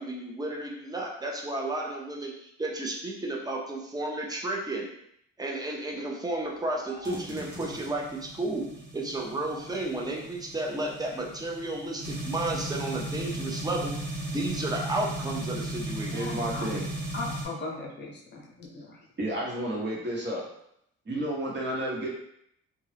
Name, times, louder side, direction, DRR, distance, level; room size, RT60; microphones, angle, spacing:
voice 1, 0.0-4.9 5.4-8.7 8.9-13.9 14.3-16.3, right 2 dB, 15° right, -1 dB, 0.6 m, -32 dB
voice 2, 6.9-7.2 16.1-16.7 17.1-19.0, left 2 dB, 35° left, -2 dB, 0.8 m, -39 dB
sound 1, 7.0-17.5, right 1 dB, 70° right, 0.9 m, -36 dB
voice 3, 16.1-16.8 19.2-20.4 21.1-22.1, right 1 dB, 35° right, -4 dB, 1.0 m, -31 dB
2.6 x 2.3 x 3.3 m, 0.73 s
cardioid pair, 90°, 30 cm